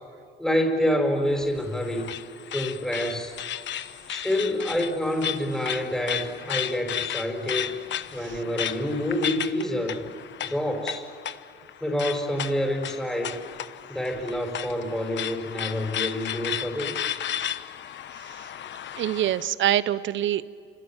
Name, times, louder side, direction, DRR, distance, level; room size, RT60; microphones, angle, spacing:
voice 1, 0.4-2.1 2.5-3.4 4.1-7.8 8.1-10.0 10.4-11.0 11.8-13.4 13.9-17.0, left 1 dB, 5° left, 2 dB, 5.1 m, -27 dB
sound 1, 1.3-19.5, left 10 dB, 65° left, 1.0 m, -34 dB
voice 2, 18.2-18.5 19.0-20.5, right 12 dB, 75° right, 15 dB, 1.0 m, -25 dB
30.0 x 27.0 x 7.4 m, 2.4 s
cardioid pair, 90°, 20 cm